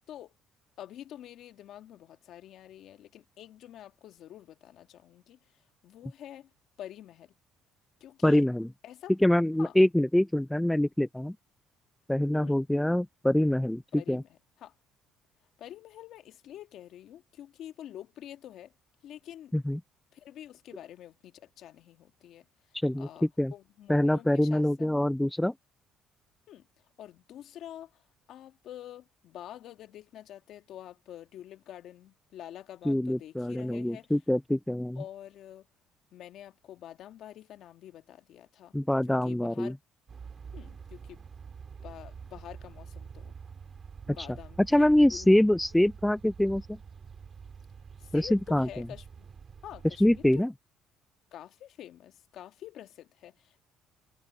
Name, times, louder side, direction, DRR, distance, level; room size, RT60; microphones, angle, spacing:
voice 1, 0.8-6.5 6.8-7.3 8.0-8.5 8.8-9.1 9.6-9.8 12.3-12.6 13.9-14.7 15.6-18.7 19.0-19.5 20.1-25.0 26.5-26.7 27.0-34.1 34.9-35.7 36.1-38.8 39.1-39.8 40.5-41.2 41.8-43.3 44.0-45.4 45.7-45.8 48.0-49.3 49.6-50.5 51.3-53.6, left 11 dB, 65° left, 1.6 m, -47 dB
voice 2, 8.2-8.7 9.2-11.4 12.1-13.8 14.1-14.2 19.5-19.8 22.8-23.1 23.4-23.5 23.9-25.5 32.9-35.0 38.7-39.7 44.7-46.8 48.1-48.7 50.0-50.5, left 1 dB, 5° left, 0.3 m, -25 dB
sound 1, 40.1-50.4, right 6 dB, 40° right, 2.7 m, -47 dB
supercardioid pair, 85°, 0 cm